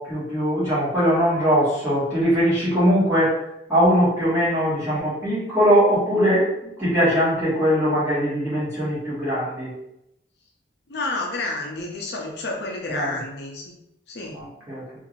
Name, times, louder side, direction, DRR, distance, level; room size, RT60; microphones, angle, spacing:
voice 1, 0.0-3.3 3.7-6.5 6.8-9.7 12.9-13.1 14.3-14.8, equal, 15° right, -10 dB, 1.4 m, -21 dB
voice 2, 10.9-13.8 14.1-14.4, left 2 dB, 60° left, 0 dB, 0.6 m, -30 dB
2.8 x 2.5 x 3.0 m, 0.81 s
head